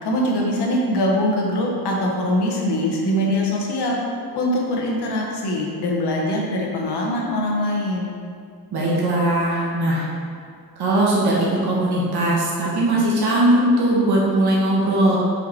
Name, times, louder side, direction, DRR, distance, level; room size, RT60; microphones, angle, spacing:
voice 1, 0.0-4.0 4.3-8.1, left 1 dB, 85° left, -2 dB, 1.3 m, -22 dB
voice 2, 8.7-10.1 10.8-11.3 11.6-15.2, right 1 dB, 80° right, -6 dB, 1.3 m, -19 dB
5.4 x 5.1 x 4.3 m, 2.3 s
wide cardioid pair, 175°, 39 cm